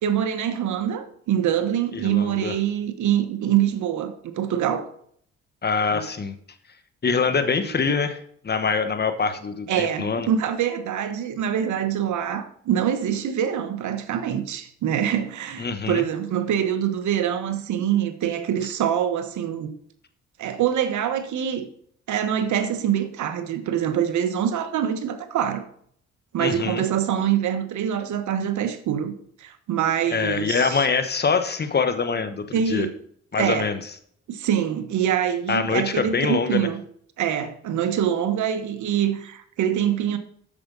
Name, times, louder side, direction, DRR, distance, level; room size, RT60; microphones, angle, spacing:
voice 1, 0.0-4.9 5.9-6.0 9.7-19.7 20.4-21.7 22.1-25.6 26.3-29.1 29.4-30.9 32.5-33.0 33.3-33.7 34.3-36.8 37.2-40.2, right 9 dB, 75° right, 1.2 m, -25 dB
voice 2, 1.9-2.5 5.6-6.3 7.0-10.3 15.6-16.0 26.4-26.8 30.1-32.9 33.3-33.8 35.5-36.7, left 5 dB, 35° left, 1.1 m, -24 dB
8.5 x 7.0 x 3.9 m
cardioid pair, 90°, 30 cm